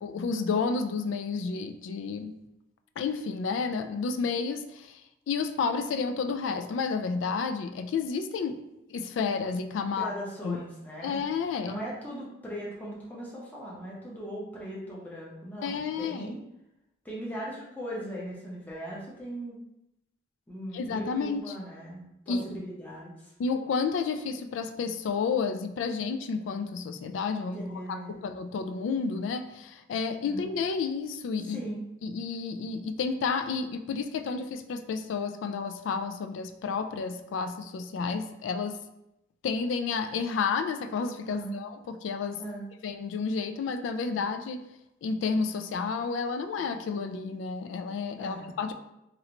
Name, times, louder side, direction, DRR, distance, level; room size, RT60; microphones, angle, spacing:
voice 1, 0.0-2.3 3.0-5.0 5.3-8.6 8.9-10.1 10.4-10.6 11.0-11.8 15.6-16.3 20.7-21.4 22.3-22.6 23.4-31.6 32.0-38.8 39.4-42.4 42.8-44.6 45.0-48.7, left 5 dB, 90° left, 9 dB, 0.3 m, -31 dB
voice 2, 9.9-11.2 11.6-16.4 17.0-19.6 20.5-23.3 27.5-28.2 30.2-30.4 31.4-31.8 41.3-41.6 42.4-42.7 48.2-48.5, right 1 dB, 10° left, -6 dB, 0.7 m, -39 dB
3.1 x 2.5 x 2.9 m, 0.88 s
head